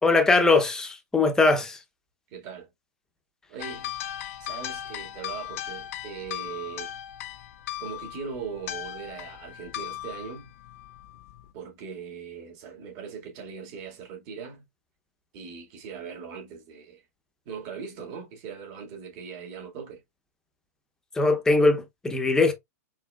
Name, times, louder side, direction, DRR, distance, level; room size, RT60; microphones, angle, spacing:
voice 1, 0.0-1.8 21.1-22.5, left 3 dB, 5° left, 0.7 m, -21 dB
voice 2, 2.3-2.7 3.5-3.9 4.4-6.9 7.8-10.5 11.5-14.6 15.3-17.0 17.5-20.0, right 6 dB, 40° right, 2.0 m, -40 dB
sound 1, 3.6-11.5, left 12 dB, 55° left, 0.5 m, -38 dB
4.7 x 3.3 x 2.3 m
hypercardioid pair, 145°, 9 cm